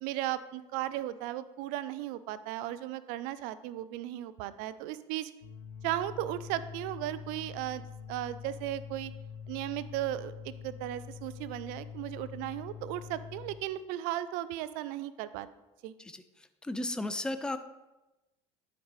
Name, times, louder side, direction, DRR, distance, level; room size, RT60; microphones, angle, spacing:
voice 1, 0.0-5.3 5.8-7.8 8.1-9.1 9.5-15.5 15.8-15.9, right 13 dB, 70° right, 15 dB, 0.4 m, -36 dB
sound 1, 5.4-13.6, left 7 dB, 85° left, 0.9 m, -45 dB
voice 2, 16.6-17.6, left 2 dB, 5° left, 11 dB, 0.5 m, -34 dB
10.0 x 5.2 x 3.1 m, 1.0 s
supercardioid pair, 90°, 15 cm